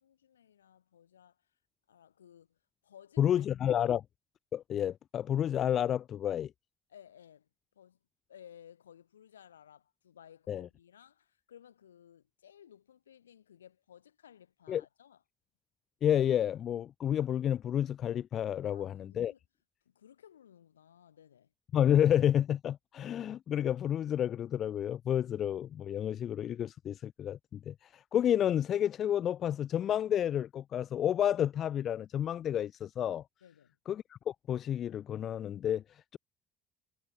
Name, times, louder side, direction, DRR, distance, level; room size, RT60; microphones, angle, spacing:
voice 1, 0.0-1.5 1.9-3.4 6.9-7.5 7.7-8.0 8.3-15.2 18.6-19.4 19.9-21.5 33.4-33.8, left 9 dB, 90° left, 6.8 m, -58 dB
voice 2, 3.2-4.0 4.5-6.5 10.5-10.7 14.7-14.8 16.0-19.3 21.7-33.2 33.9-36.2, left 10 dB, 50° left, 0.4 m, -30 dB
hypercardioid pair, 55°, 0 cm